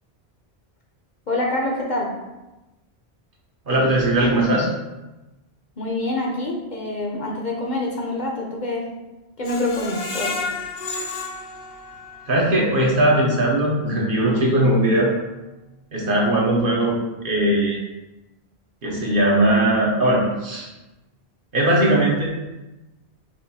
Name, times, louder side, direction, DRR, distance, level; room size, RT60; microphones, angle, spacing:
voice 1, 1.3-2.1 5.8-8.8 9.4-10.4, left 2 dB, 50° left, -2 dB, 0.8 m, -26 dB
voice 2, 3.7-4.7 12.3-15.1 15.9-17.8 18.8-20.7 21.5-22.3, right 1 dB, 55° right, -3 dB, 1.1 m, -19 dB
Screech, 9.4-12.4 12.9-13.0 13.4-13.5, left 4 dB, 80° left, 0.8 m, -31 dB
5.9 x 2.6 x 2.7 m, 1.0 s
omnidirectional pair, 1.1 m